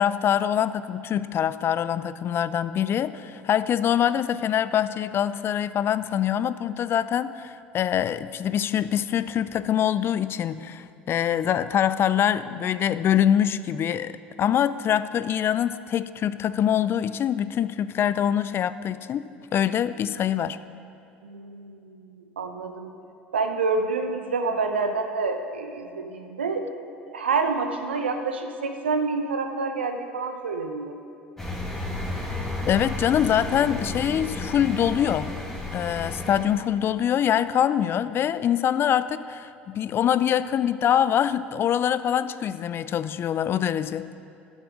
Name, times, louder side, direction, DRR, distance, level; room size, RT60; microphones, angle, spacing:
voice 1, 0.0-20.6 32.7-35.3 35.7-44.1, left 9 dB, 45° left, 14 dB, 0.4 m, -24 dB
voice 2, 21.2-22.9 23.3-26.7 27.1-30.9, right 4 dB, 90° right, 6 dB, 0.8 m, -28 dB
sound 1, 31.4-36.5, left 2 dB, 5° left, 2.3 m, -32 dB
12.0 x 6.4 x 6.2 m, 2.6 s
hypercardioid pair, 70°, 6 cm